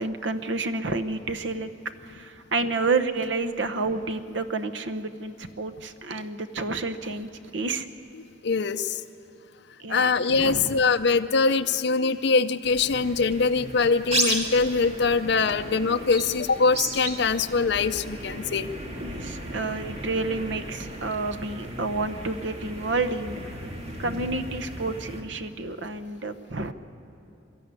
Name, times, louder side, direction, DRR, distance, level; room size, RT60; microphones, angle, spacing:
voice 1, 0.0-1.7 2.0-7.9 9.8-10.8 13.0-13.1 19.0-23.6 24.0-26.7, right 3 dB, 75° right, 10 dB, 1.0 m, -30 dB
voice 2, 8.2-9.0 9.9-18.7, left 4 dB, 60° left, 7 dB, 0.6 m, -23 dB
sound 1, 12.6-25.2, right 1 dB, 35° right, 2.0 m, -34 dB
22.5 x 13.5 x 9.7 m, 3.0 s
head